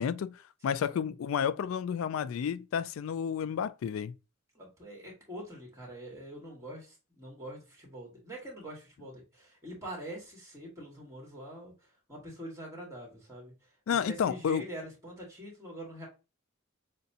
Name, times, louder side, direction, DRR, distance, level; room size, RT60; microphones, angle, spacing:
voice 1, 0.0-4.1 13.9-14.6, left 7 dB, 80° left, 0.3 m, -31 dB
voice 2, 4.5-16.1, right 1 dB, 15° right, 1.8 m, -45 dB
6.5 x 2.2 x 2.7 m
head